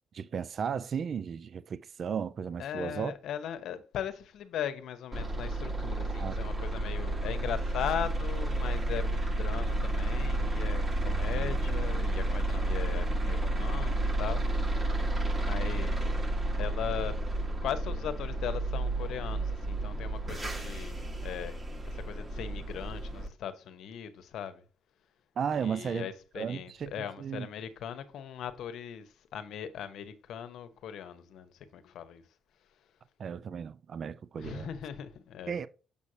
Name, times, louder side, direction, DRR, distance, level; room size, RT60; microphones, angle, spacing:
voice 1, 0.1-3.1 6.1-6.4 25.4-26.1 26.4-27.5 33.2-34.7 35.5-35.7, right 7 dB, 55° right, 0.4 m, -35 dB
voice 2, 2.6-15.0 15.4-16.1 16.6-17.2 17.6-21.6 21.9-24.6 25.5-32.2 34.4-35.6, left 9 dB, 80° left, 0.9 m, -39 dB
sound 1, 5.1-23.3, right 1 dB, 30° right, 1.6 m, -31 dB
6.9 x 6.3 x 2.8 m
cardioid pair, 90°, 0 cm